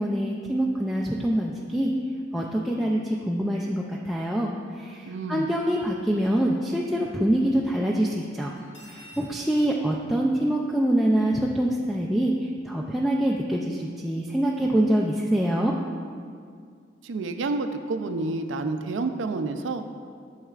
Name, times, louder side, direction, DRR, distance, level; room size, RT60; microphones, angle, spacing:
voice 1, 0.0-1.9 2.3-8.6 8.9-15.7, right 1 dB, ahead, -3 dB, 0.3 m, -25 dB
voice 2, 5.1-5.5 17.0-19.9, right 3 dB, 90° right, 8 dB, 0.4 m, -29 dB
Cutlery silverware, 8.6-9.3, equal, 75° left, 1.5 m, -48 dB
8.9 x 6.4 x 2.4 m, 2.2 s
head